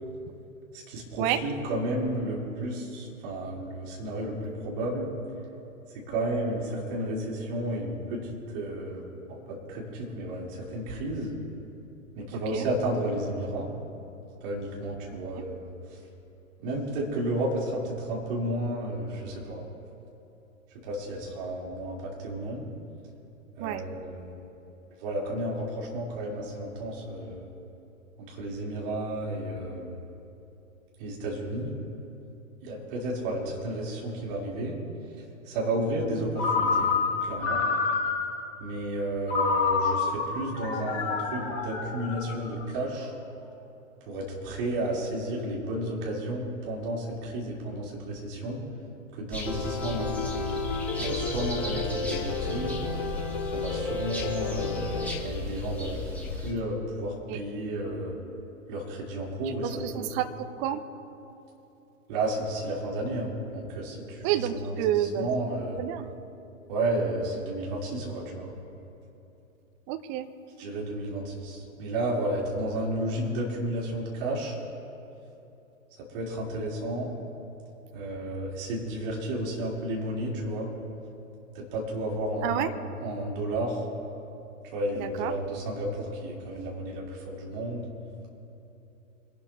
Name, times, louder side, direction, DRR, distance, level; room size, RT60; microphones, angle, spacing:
voice 1, 0.9-5.1 5.9-9.0 9.3-11.3 12.2-13.7 14.4-15.6 16.6-19.6 20.8-22.6 23.6-24.4 25.0-27.4 28.3-29.9 31.0-31.7 32.6-34.8 35.5-36.9 37.2-37.6 38.6-43.1 44.1-48.6 49.1-50.3 51.0-52.8 53.5-58.2 58.7-60.1 62.1-64.3 64.6-64.7 65.1-65.8 66.7-68.5 70.6-74.6 76.1-77.1 77.9-80.7 81.5-82.7 83.0-83.8 84.7-87.9, right 1 dB, 40° right, -4 dB, 4.0 m, -32 dB
voice 2, 12.3-12.7 15.1-15.4 23.6-23.8 57.3-57.4 59.4-60.8 64.2-65.3 65.8-66.1 69.9-70.3 82.4-82.7 85.0-85.4, right 12 dB, 20° right, 9 dB, 0.5 m, -30 dB
Ringtone, 36.4-38.5 39.3-42.6, left 4 dB, 30° left, 2.2 m, -28 dB
sound 1, 49.3-56.5, left 2 dB, 5° left, 2.5 m, -36 dB
Piano, 49.5-55.1, left 4 dB, 50° left, 2.5 m, -32 dB
26.5 x 12.0 x 3.0 m, 2.9 s
figure-of-eight pair, 105°, 41 cm